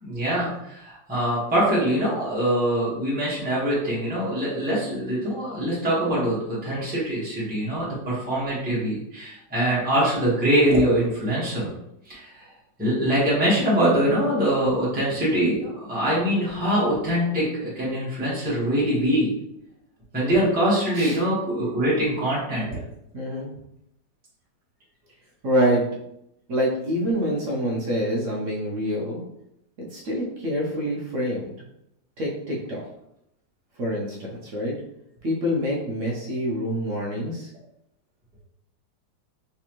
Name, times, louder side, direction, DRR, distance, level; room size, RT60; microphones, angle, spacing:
voice 1, 0.0-11.7 12.1-12.5 12.8-19.3 20.1-22.8, right 1 dB, 5° right, -8 dB, 1.1 m, -23 dB
voice 2, 23.1-23.5 25.4-25.8 26.5-29.2 29.9-31.5 32.2-32.8 33.8-34.7 35.2-37.5, equal, 60° right, -3 dB, 0.8 m, -26 dB
3.4 x 3.3 x 3.0 m, 0.79 s
omnidirectional pair, 2.0 m